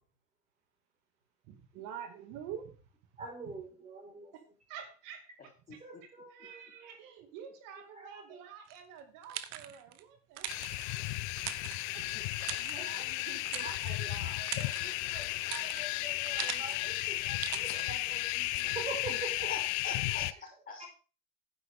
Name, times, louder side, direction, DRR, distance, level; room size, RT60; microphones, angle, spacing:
voice 1, 1.5-2.8 3.4-3.6 4.3-11.1 11.4-12.1 12.6-14.5, right 8 dB, 65° right, 6 dB, 2.4 m, -48 dB
voice 2, 3.2-4.3 5.8-6.9 7.7-8.4 12.8-13.1 13.6-19.5 20.1-20.2 20.8-20.9, right 3 dB, 20° right, 1 dB, 5.1 m, -45 dB
voice 3, 5.4-5.8 12.1-12.2 14.6-14.8 19.1-19.2 19.5-20.9, left 4 dB, 25° left, 0 dB, 3.9 m, -45 dB
sound 1, 8.7-10.0 10.4-12.1 12.4-13.0 13.5-14.0 14.3-16.9 17.4-17.8, right 12 dB, 50° right, 1.0 m, -42 dB
sound 2, 10.5-20.3, left 19 dB, 80° left, 0.8 m, -34 dB
11.5 x 10.0 x 3.7 m, 0.35 s
cardioid pair, 150°, 34 cm